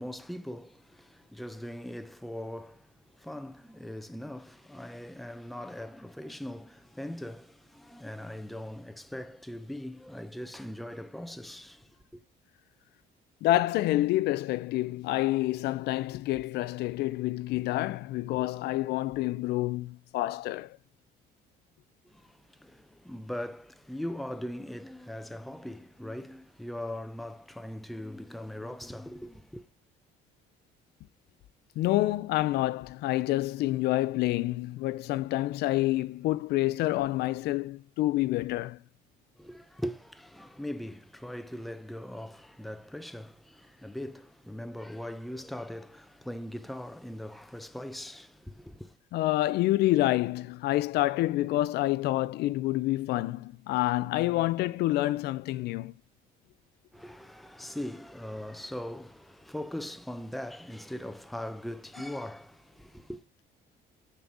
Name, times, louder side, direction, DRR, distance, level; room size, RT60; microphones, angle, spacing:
voice 1, 0.0-12.2 22.0-29.7 39.3-49.0 56.9-63.2, left 1 dB, ahead, 0.5 m, -40 dB
voice 2, 13.4-20.8 31.8-38.8 49.1-56.0, left 16 dB, 75° left, 0.4 m, -28 dB
6.8 x 4.0 x 6.0 m
cardioid pair, 110°, 17 cm